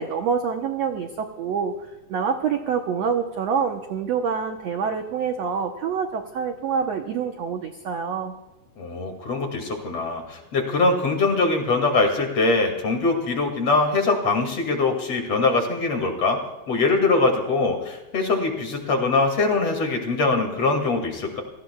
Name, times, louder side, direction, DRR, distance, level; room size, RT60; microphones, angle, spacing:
voice 1, 0.0-1.7 2.1-8.3, right 6 dB, 75° right, 4 dB, 1.6 m, -26 dB
voice 2, 8.8-16.4 16.7-21.4, left 3 dB, 45° left, 3 dB, 3.1 m, -22 dB
28.5 x 18.5 x 2.3 m, 1.0 s
omnidirectional pair, 4.2 m